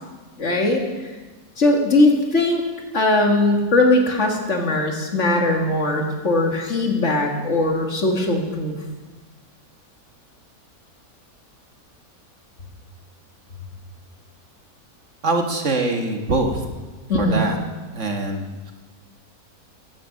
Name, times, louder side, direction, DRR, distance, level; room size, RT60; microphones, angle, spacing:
voice 1, 0.4-1.1 1.6-2.6 2.9-8.8 17.1-17.5, left 2 dB, 50° left, 2 dB, 2.1 m, -20 dB
voice 2, 15.2-16.6 17.1-17.6 17.9-18.7, right 2 dB, 50° right, 4 dB, 1.6 m, -23 dB
15.0 x 10.5 x 6.4 m, 1.3 s
omnidirectional pair, 1.7 m